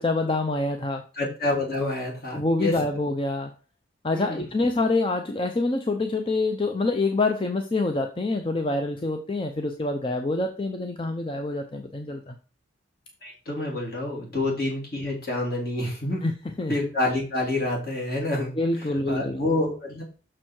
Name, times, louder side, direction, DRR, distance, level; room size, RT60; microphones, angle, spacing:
voice 1, 0.0-1.0 2.3-3.5 4.0-12.4 14.4-14.5 16.2-16.3 16.6-16.7 18.6-19.4, left 2 dB, 25° left, 5 dB, 0.6 m, -26 dB
voice 2, 1.1-2.7 4.1-4.5 13.2-16.2 16.7-18.5 18.8-20.0, left 2 dB, 50° left, -2 dB, 3.0 m, -28 dB
6.3 x 6.1 x 4.5 m, 0.36 s
head